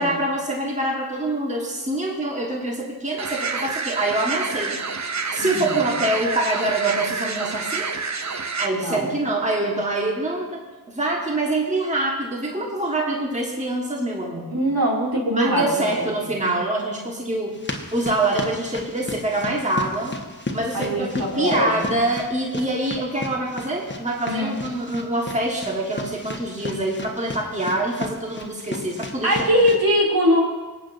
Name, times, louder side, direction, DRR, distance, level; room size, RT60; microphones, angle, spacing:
voice 1, 0.0-4.8 5.3-7.9 8.6-10.6 10.9-14.5 15.3-17.5 17.9-20.1 20.5-29.5, right 2 dB, 20° right, -1 dB, 1.6 m, -25 dB
sound 1, 3.2-8.7, right 4 dB, 45° right, 0.7 m, -28 dB
voice 2, 5.4-6.0 8.7-9.1 14.5-15.7 16.0-16.4 20.7-21.9 24.3-24.5 29.2-30.4, equal, 65° right, -3 dB, 2.8 m, -22 dB
sound 2, 17.5-29.8, left 2 dB, 30° left, 1.3 m, -35 dB
23.5 x 8.4 x 2.7 m, 1.3 s
cardioid pair, 55°, 39 cm